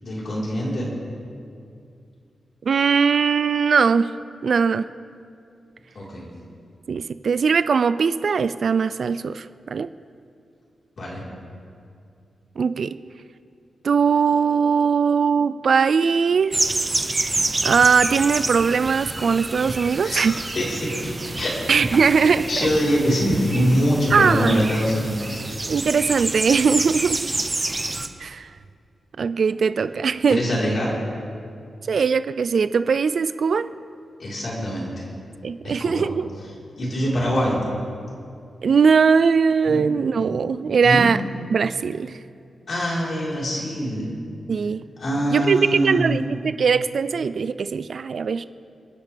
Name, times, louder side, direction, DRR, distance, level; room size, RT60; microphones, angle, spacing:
voice 1, 0.0-0.9 5.9-6.3 11.0-11.2 20.0-20.3 20.5-21.1 21.4-21.5 22.5-25.4 30.3-31.0 34.2-35.1 35.6-36.1 36.8-37.6 39.7-39.8 40.1-40.3 40.8-41.1 42.7-44.1 45.0-46.2, equal, 50° left, -5 dB, 4.2 m, -24 dB
voice 2, 2.7-4.1 4.4-4.9 6.9-9.9 12.6-13.0 13.8-16.6 17.6-20.3 21.7-22.7 24.1-24.6 25.7-27.3 28.2-28.5 29.2-30.4 31.9-33.7 35.4-36.3 38.6-41.2 41.5-42.2 44.5-44.8 45.3-48.5, right 5 dB, 55° right, 14 dB, 0.4 m, -20 dB
sound 1, 16.5-28.1, right 2 dB, 20° right, 0.7 m, -28 dB
29.5 x 10.5 x 3.5 m, 2.4 s
wide cardioid pair, 165°, 0 cm